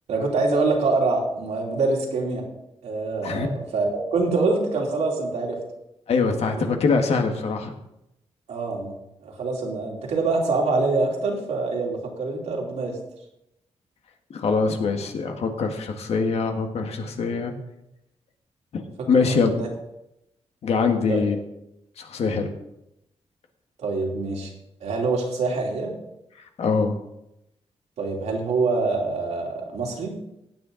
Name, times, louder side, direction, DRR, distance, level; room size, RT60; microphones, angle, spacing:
voice 1, 0.1-2.4 2.8-5.6 6.5-6.7 8.5-8.9 9.2-13.0 19.0-19.2 19.6-19.7 21.1-21.2 23.8-24.5 24.8-25.9 28.0-30.2, right 3 dB, 85° right, -1 dB, 3.2 m, -25 dB
voice 2, 6.1-7.7 14.3-17.5 18.7-18.8 19.1-19.5 20.6-21.4 22.0-22.5 26.6-26.9, left 4 dB, 70° left, 4 dB, 1.7 m, -23 dB
16.0 x 9.1 x 3.9 m, 0.86 s
cardioid pair, 120°, 11 cm